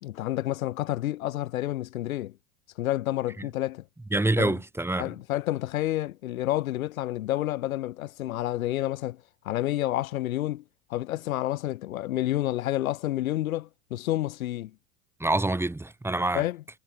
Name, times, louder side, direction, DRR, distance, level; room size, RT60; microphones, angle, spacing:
voice 1, 0.0-2.3 2.8-3.8 4.4-4.6 5.0-10.6 10.9-14.7 16.3-16.6, left 15 dB, 75° left, 2.6 m, -29 dB
voice 2, 4.1-5.1 15.2-16.4, right 2 dB, 5° right, 1.3 m, -26 dB
hypercardioid pair, 90°, 42 cm